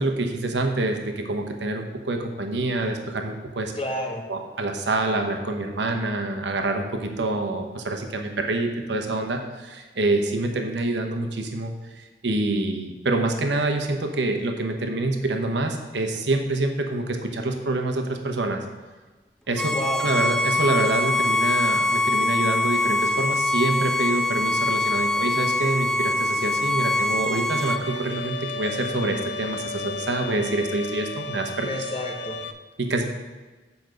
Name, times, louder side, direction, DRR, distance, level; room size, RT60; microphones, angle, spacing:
voice 1, 0.0-3.7 4.3-18.6 19.5-19.7 20.0-31.7 32.8-33.0, right 2 dB, 75° right, 4 dB, 0.9 m, -26 dB
voice 2, 3.7-4.2 19.7-20.1 31.6-32.4, left 1 dB, 35° left, 1 dB, 1.3 m, -30 dB
Bowed string instrument, 19.6-27.8, left 2 dB, 5° left, 0.3 m, -23 dB
Bowed string instrument 2, 27.5-32.5, left 3 dB, 85° left, 0.5 m, -34 dB
7.2 x 5.2 x 6.2 m, 1.3 s
head